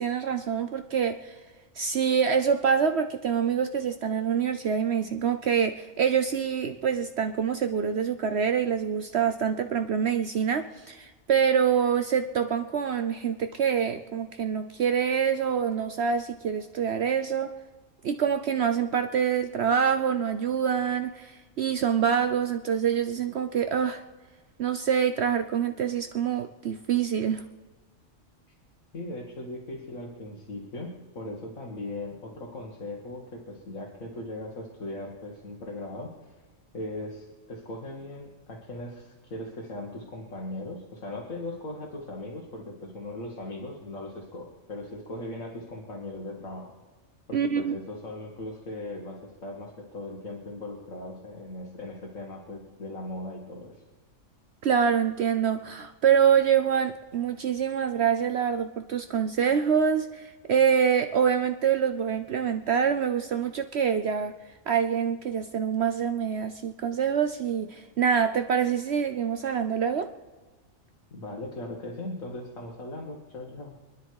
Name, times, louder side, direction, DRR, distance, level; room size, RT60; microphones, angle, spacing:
voice 1, 0.0-1.3 1.8-17.5 18.0-24.0 24.6-27.4 47.3-47.7 54.6-64.3 64.7-70.1, right 7 dB, 60° right, 7 dB, 0.9 m, -25 dB
voice 2, 28.9-36.3 36.7-46.7 47.3-53.8 71.1-73.7, left 1 dB, 80° left, -2 dB, 2.4 m, -39 dB
27.0 x 10.5 x 4.8 m, 1.3 s
omnidirectional pair, 1.4 m